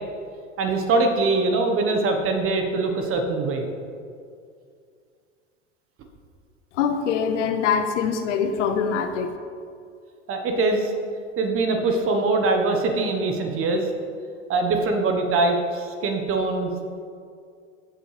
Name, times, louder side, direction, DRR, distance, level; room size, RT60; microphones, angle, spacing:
voice 1, 0.6-3.7 10.3-10.9 11.4-13.9 14.5-16.7, right 3 dB, 35° right, 4 dB, 1.3 m, -23 dB
voice 2, 6.7-9.3, left 6 dB, 70° left, 7 dB, 0.8 m, -23 dB
14.5 x 5.4 x 3.4 m, 2.3 s
hypercardioid pair, 95°, 37 cm